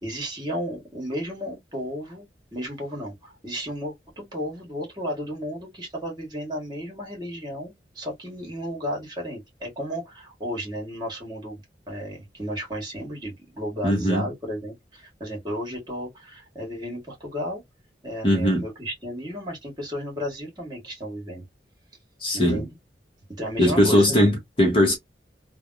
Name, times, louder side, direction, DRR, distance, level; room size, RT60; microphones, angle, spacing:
voice 1, 0.0-2.3 2.5-11.6 11.9-17.6 18.0-21.4 22.3-22.7 23.3-24.3, equal, 25° right, 1.6 m, -33 dB
voice 2, 13.8-14.2 18.2-18.6 22.2-22.6 23.6-25.0, equal, 30° left, 1.1 m, -20 dB
3.2 x 2.3 x 2.6 m
head